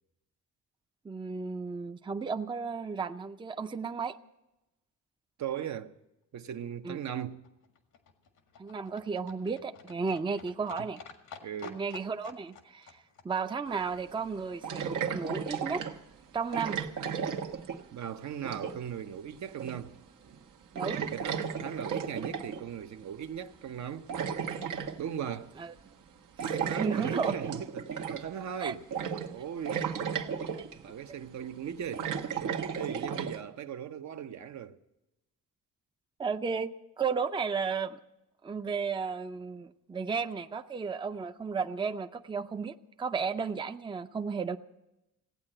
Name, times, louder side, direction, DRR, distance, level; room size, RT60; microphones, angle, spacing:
voice 1, 1.0-4.2 6.8-7.0 8.6-11.0 11.6-12.9 13.2-15.8 16.3-16.8 20.7-21.0 25.6-25.7 26.4-27.3 28.6-28.7 29.7-29.8 36.2-38.0 38.4-44.6, right 5 dB, 15° right, 0.5 m, -34 dB
voice 2, 5.4-5.9 6.3-7.4 10.8-10.9 11.4-11.8 17.9-19.9 21.0-24.1 25.0-25.5 26.4-28.8 29.3-29.8 30.7-34.7, right 8 dB, 65° right, 0.8 m, -38 dB
Livestock farm animals working animals, 6.8-15.1 15.3-15.4 15.6-15.7 15.9-16.0 16.2-16.3 16.5-16.6 16.9-17.0 17.2-17.3 17.5-17.6, left 7 dB, 90° left, 1.9 m, -52 dB
sound 1, 13.7-13.8 14.6-16.0 16.5-18.0 18.3-18.9 19.6-20.0 20.3-20.4 20.7-22.6 23.7-25.0 26.4-28.4 28.9-29.4 29.6-30.8 31.5-33.4, right 7 dB, 80° right, 1.2 m, -34 dB
16.5 x 8.9 x 8.8 m
cardioid pair, 105°, 31 cm